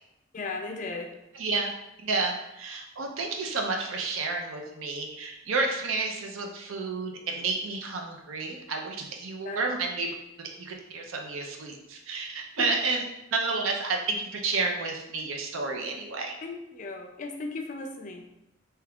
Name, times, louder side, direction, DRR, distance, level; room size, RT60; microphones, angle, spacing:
voice 1, 0.3-1.1 9.4-9.6 12.6-12.7 16.4-18.2, left 3 dB, 40° left, 3 dB, 0.4 m, -36 dB
voice 2, 1.4-1.7 2.0-10.1 10.4-13.0 13.3-16.3, right 3 dB, 85° right, 2 dB, 0.5 m, -31 dB
2.8 x 2.3 x 3.5 m, 0.88 s
head